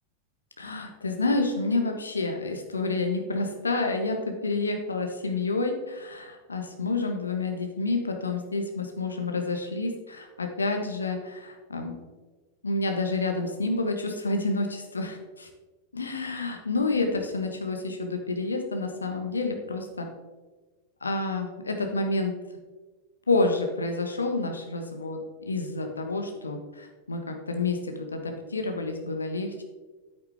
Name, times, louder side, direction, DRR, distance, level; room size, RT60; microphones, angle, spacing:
voice 1, 0.6-11.9 12.6-15.5 15.9-20.1 21.0-22.3 23.3-25.2 25.5-29.6, left 3 dB, 75° left, 4 dB, 1.3 m, -29 dB
9.5 x 8.8 x 3.5 m, 1.3 s
figure-of-eight pair, 90°, 0 cm